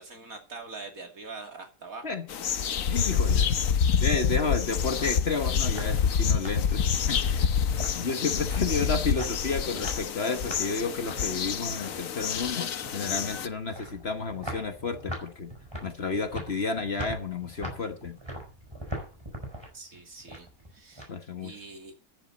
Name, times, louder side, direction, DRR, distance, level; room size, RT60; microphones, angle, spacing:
voice 1, 0.0-2.1 8.7-8.8 19.7-21.1 21.4-21.9, right 3 dB, 60° right, 3.0 m, -43 dB
sound 1, 2.3-13.5, left 7 dB, 60° left, 1.3 m, -27 dB
voice 2, 2.9-3.5 4.0-7.5 7.9-15.5 15.8-18.2 21.1-21.5, left 4 dB, 45° left, 1.4 m, -31 dB
sound 2, 4.9-21.0, equal, 15° right, 4.6 m, -42 dB
14.0 x 11.0 x 4.0 m
omnidirectional pair, 1.7 m